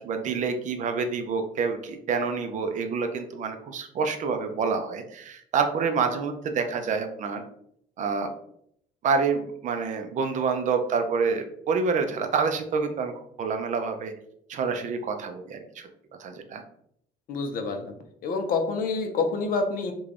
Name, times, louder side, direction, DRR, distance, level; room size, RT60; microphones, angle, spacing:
voice 1, 0.0-7.4 8.0-8.3 9.0-13.1 13.4-14.1 14.5-15.9 16.2-16.6, right 5 dB, 50° right, 6 dB, 0.4 m, -27 dB
voice 2, 17.3-17.9 18.2-19.9, left 4 dB, 55° left, 5 dB, 0.5 m, -27 dB
3.2 x 2.2 x 2.4 m, 0.71 s
cardioid pair, 110°, 17 cm